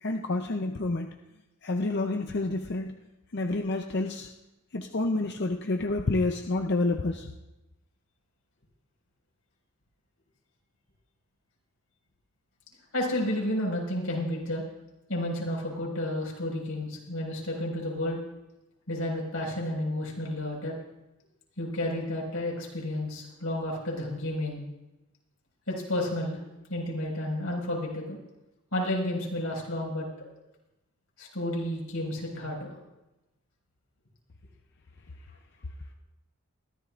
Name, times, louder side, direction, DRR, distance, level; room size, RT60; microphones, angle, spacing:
voice 1, 0.0-1.1 1.6-3.0 3.3-4.3 4.7-7.3, left 2 dB, 50° left, 4 dB, 0.6 m, -29 dB
voice 2, 12.9-14.6 15.1-18.2 18.9-20.7 21.6-24.6 25.7-26.4 26.7-28.2 28.7-30.1 31.2-32.7, left 1 dB, 85° left, -2 dB, 5.1 m, -31 dB
22.5 x 14.5 x 2.5 m, 0.98 s
head